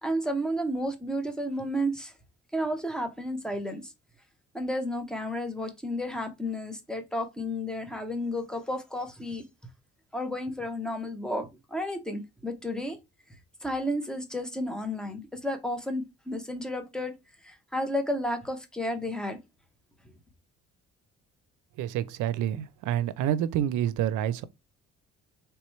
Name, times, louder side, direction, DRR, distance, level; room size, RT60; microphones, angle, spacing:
voice 1, 0.0-2.1 2.5-3.9 4.5-9.4 10.1-13.0 13.6-17.1 17.4-19.4, equal, ahead, 1.0 m, -32 dB
voice 2, 21.8-24.4, right 11 dB, 90° right, 0.5 m, -28 dB
3.4 x 3.0 x 4.5 m
cardioid pair, 90°, 30 cm